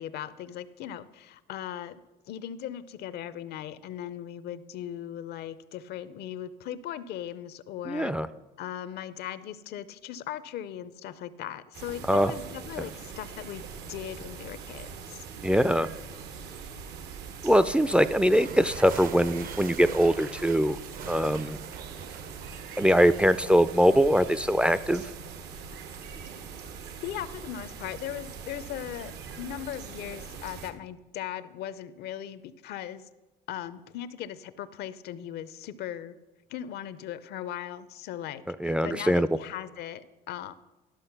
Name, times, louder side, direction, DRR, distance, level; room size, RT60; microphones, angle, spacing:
voice 1, 0.0-2.0 2.3-8.1 8.6-15.6 27.0-29.1 29.4-33.1 33.5-36.1 36.5-40.5, left 11 dB, 75° left, 15 dB, 0.6 m, -38 dB
voice 2, 7.9-8.3 12.1-12.3 15.4-15.9 17.4-20.8 21.1-21.6 22.8-25.1 38.6-39.3, equal, 5° right, 12 dB, 0.3 m, -22 dB
sound 1, 11.7-30.7, right 6 dB, 80° right, 1.0 m, -42 dB
sound 2, 18.3-25.1, right 7 dB, 55° right, 0.7 m, -45 dB
12.0 x 6.2 x 5.8 m, 1.1 s
cardioid pair, 110°, 17 cm